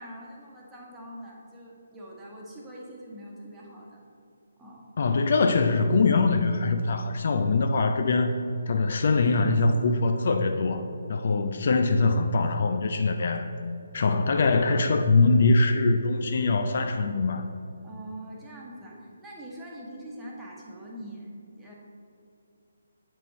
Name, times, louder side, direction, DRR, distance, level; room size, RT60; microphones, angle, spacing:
voice 1, 0.0-4.0 4.6-4.8 17.8-21.7, right 1 dB, 10° right, -4 dB, 1.1 m, -43 dB
voice 2, 5.0-8.3 8.7-10.8 11.1-13.5 13.9-17.4, left 3 dB, 45° left, 6 dB, 0.4 m, -23 dB
8.2 x 4.5 x 4.1 m, 2.7 s
figure-of-eight pair, 140°, 0 cm